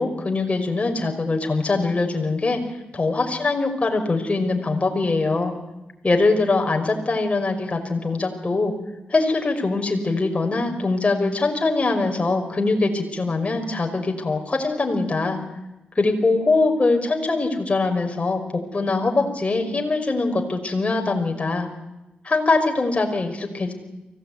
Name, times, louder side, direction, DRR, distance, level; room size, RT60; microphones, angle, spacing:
voice 1, 0.0-2.6 2.9-5.5 6.0-8.7 9.1-15.4 16.0-21.7 22.2-23.7, left 3 dB, 35° left, 3 dB, 5.5 m, -22 dB
24.0 x 17.5 x 9.5 m, 0.97 s
supercardioid pair, 50°, 3 cm